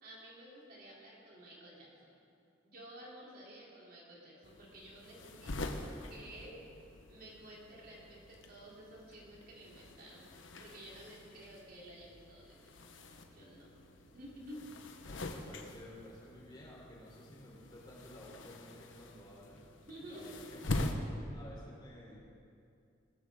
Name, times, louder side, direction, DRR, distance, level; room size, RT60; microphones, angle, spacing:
voice 1, 0.0-2.2 2.6-5.8 6.1-6.6 7.1-13.7 14.1-14.7 19.8-20.5 22.0-22.1, right 1 dB, 50° right, -5 dB, 3.3 m, -52 dB
sound 1, 4.4-20.9, left 2 dB, 80° left, 1.1 m, -45 dB
voice 2, 5.1-5.9 14.5-14.6 15.0-19.6 20.1-20.9 21.3-22.2, equal, 25° left, -4 dB, 3.5 m, -53 dB
19.0 x 14.5 x 3.7 m, 2.5 s
head